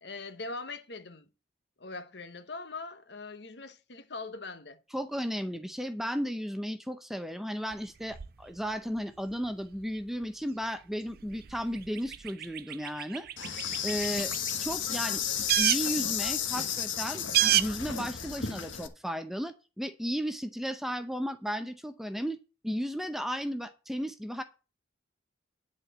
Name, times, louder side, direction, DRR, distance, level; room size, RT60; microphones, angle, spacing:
voice 1, 0.0-1.3 1.8-4.8, left 3 dB, 65° left, 1.1 m, -41 dB
voice 2, 4.9-14.3 14.6-15.2 15.6-22.4 22.6-24.4, equal, ahead, 0.6 m, -34 dB
sound 1, 7.7-15.0 15.3-18.3, right 13 dB, 50° right, 0.4 m, -33 dB
Insect, 13.4-18.9, left 8 dB, 85° left, 1.3 m, -33 dB
11.0 x 4.5 x 8.0 m
head